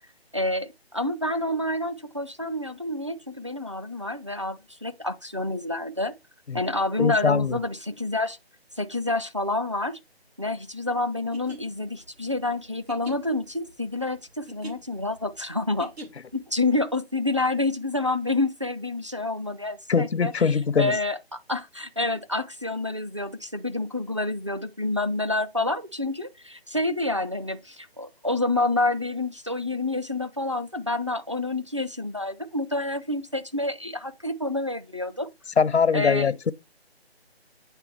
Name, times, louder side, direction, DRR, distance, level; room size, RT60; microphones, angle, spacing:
voice 1, 0.3-6.1 6.5-8.4 8.8-10.0 10.4-15.9 16.5-20.3 20.8-35.3 35.9-36.5, left 2 dB, 30° right, 0.4 m, -28 dB
voice 2, 7.0-7.6 19.9-21.0 35.6-36.5, left 6 dB, 80° left, 0.6 m, -22 dB
sound 1, 11.2-16.4, right 1 dB, 70° right, 2.5 m, -44 dB
9.1 x 3.4 x 4.6 m
figure-of-eight pair, 160°, 32 cm